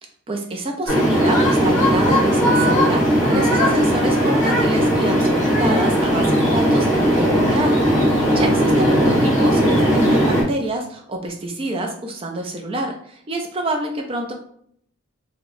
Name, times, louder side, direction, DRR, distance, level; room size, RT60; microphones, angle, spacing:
voice 1, 0.3-14.3, right 1 dB, 25° right, 2 dB, 0.4 m, -27 dB
sound 1, 0.9-10.4, equal, 15° left, 1.4 m, -17 dB
3.1 x 2.8 x 2.5 m, 0.66 s
head